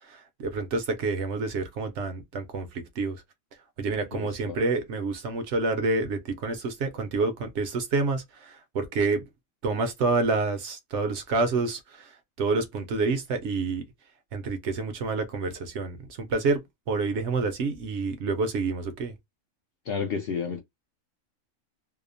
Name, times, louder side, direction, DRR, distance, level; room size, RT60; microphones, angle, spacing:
voice 1, 0.1-3.2 3.8-9.2 9.6-12.1 12.4-13.8 14.3-16.6 16.9-19.1, right 3 dB, 65° right, 0.8 m, -28 dB
voice 2, 4.1-4.6 19.9-20.6, left 6 dB, 65° left, 0.6 m, -31 dB
2.7 x 2.0 x 2.5 m
omnidirectional pair, 1.4 m